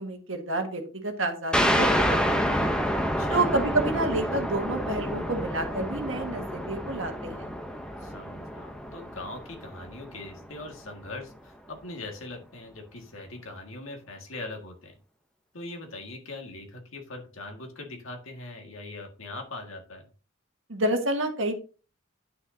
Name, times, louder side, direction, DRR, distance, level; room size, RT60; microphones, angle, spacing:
voice 1, 0.0-2.8 3.3-7.5 20.7-21.5, right 2 dB, 65° right, 4 dB, 1.6 m, -29 dB
sound 1, 1.5-10.7, equal, 5° left, 0.6 m, -28 dB
voice 2, 8.0-14.9 15.5-20.1, left 2 dB, 75° left, 3 dB, 1.8 m, -41 dB
9.5 x 6.3 x 2.7 m, 0.35 s
head